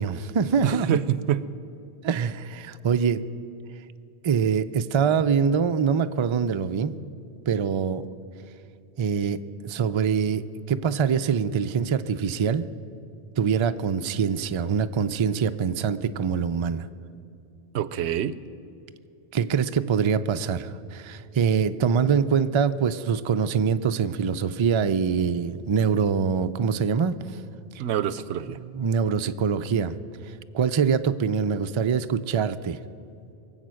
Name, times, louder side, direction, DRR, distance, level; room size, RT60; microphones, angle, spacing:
voice 1, 0.0-1.0 2.0-3.2 3.8-3.9 4.2-7.0 7.5-8.1 9.0-12.7 13.4-16.9 19.3-27.4 27.7-27.8 28.5-30.0 30.2-32.8, right 6 dB, 50° right, 10 dB, 0.3 m, -24 dB
voice 2, 0.6-1.5 17.7-18.4 27.8-28.6, right 10 dB, 90° right, 16 dB, 0.9 m, -26 dB
23.0 x 8.0 x 6.3 m, 2.7 s
omnidirectional pair, 1.1 m